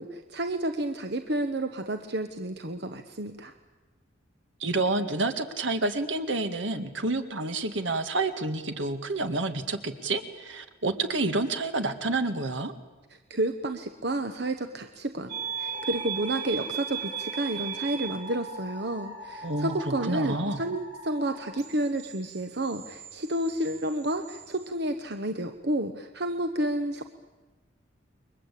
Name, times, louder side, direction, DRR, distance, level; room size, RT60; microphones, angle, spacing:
voice 1, 0.0-3.5 13.3-27.1, right 1 dB, 55° right, 7 dB, 1.2 m, -31 dB
voice 2, 4.6-12.7 19.4-20.6, right 2 dB, 75° right, 8 dB, 2.0 m, -29 dB
sound 1, 15.3-24.7, right 6 dB, 40° right, 3.0 m, -38 dB
29.5 x 23.0 x 8.5 m, 1.2 s
head